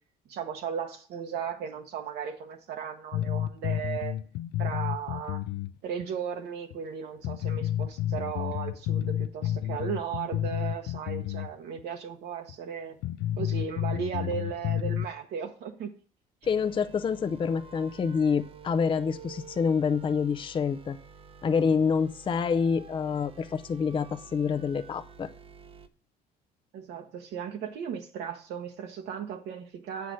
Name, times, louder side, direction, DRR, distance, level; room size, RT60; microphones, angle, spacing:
voice 1, 0.3-4.1 4.6-5.4 5.8-13.0 13.4-15.9 26.7-30.1, right 7 dB, 75° right, 3 dB, 1.1 m, -36 dB
sound 1, 3.1-5.7 6.0-6.1 6.7-6.8 7.2-11.5 11.8-11.9 12.5-12.6 13.0-15.1, left 11 dB, 85° left, 0.5 m, -30 dB
sound 2, 16.4-25.9, right 6 dB, 35° right, 0.8 m, -50 dB
voice 2, 16.5-21.0 21.4-25.3, left 6 dB, 30° left, 9 dB, 0.5 m, -27 dB
8.1 x 5.8 x 6.3 m, 0.41 s
cardioid pair, 110°, 17 cm